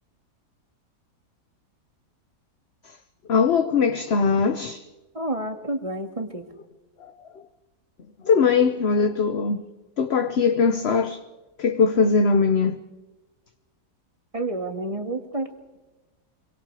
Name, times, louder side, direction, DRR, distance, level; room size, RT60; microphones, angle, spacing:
voice 1, 3.3-4.8 7.0-7.4 8.2-9.6 10.0-11.2 11.6-12.8, left 5 dB, 45° left, 1.0 m, -21 dB
voice 2, 5.1-6.5 14.3-15.5, right 2 dB, 20° right, 2.0 m, -29 dB
25.0 x 24.0 x 4.9 m
omnidirectional pair, 1.8 m